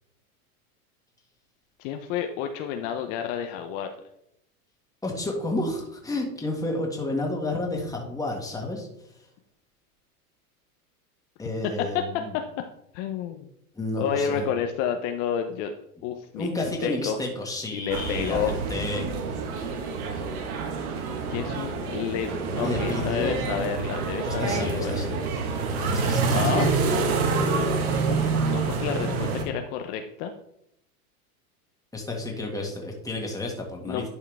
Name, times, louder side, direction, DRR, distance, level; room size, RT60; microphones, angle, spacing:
voice 1, 1.8-3.9 11.6-12.0 12.3-12.4 12.9-13.5 14.0-15.7 16.0-16.5 16.8-17.2 17.7-18.6 21.3-25.3 26.3-26.7 28.1-30.3 33.8-34.1, left 8 dB, 55° left, 6 dB, 0.8 m, -30 dB
voice 2, 5.0-8.9 11.4-12.3 13.8-14.5 16.3-19.1 22.6-23.4 23.7-23.8 24.2-25.1 25.9-26.3 31.9-34.1, left 2 dB, 10° left, 0 dB, 1.8 m, -31 dB
sound 1, 17.9-29.4, right 4 dB, 70° right, 1.6 m, -27 dB
11.0 x 4.6 x 3.5 m, 0.78 s
supercardioid pair, 115°, 45 cm